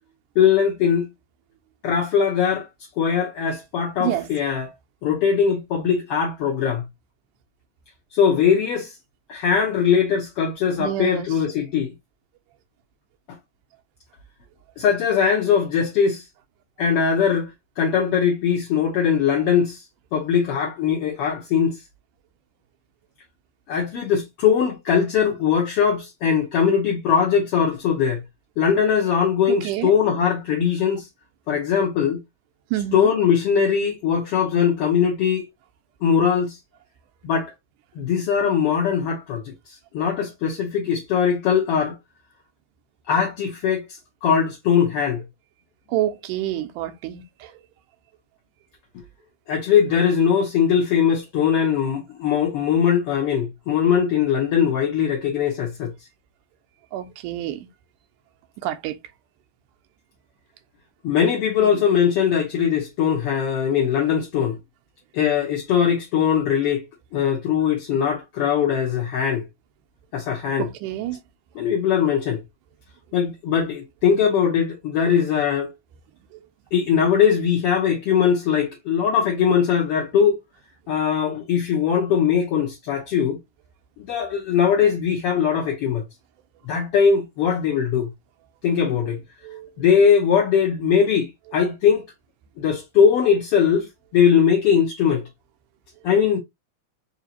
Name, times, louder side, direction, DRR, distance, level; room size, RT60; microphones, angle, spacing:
voice 1, 0.3-1.1 1.8-2.7 3.0-4.7 5.0-6.8 8.1-9.0 9.3-11.9 14.8-16.2 16.8-17.5 17.8-19.8 20.1-21.8 23.7-28.2 28.6-31.1 31.5-32.2 32.9-35.5 36.0-36.6 37.2-37.5 38.0-39.5 39.9-42.0 43.1-43.8 44.2-45.2 49.5-55.9 61.0-64.6 65.1-66.8 67.1-69.5 70.1-70.7 71.6-72.4 73.1-75.7 76.7-80.4 80.9-83.4 84.0-86.0 86.7-88.1 88.6-89.2 89.8-92.1 92.6-93.9 94.1-95.3 96.0-96.4, left 7 dB, 70° left, 1.5 m, -20 dB
voice 2, 10.8-11.4 29.5-30.0 32.7-33.1 45.9-47.6 56.9-57.7 58.6-59.0 61.6-61.8 70.6-71.2 76.3-76.4 89.4-89.7, right 13 dB, 90° right, 2.2 m, -28 dB
5.0 x 2.7 x 2.7 m
omnidirectional pair, 3.6 m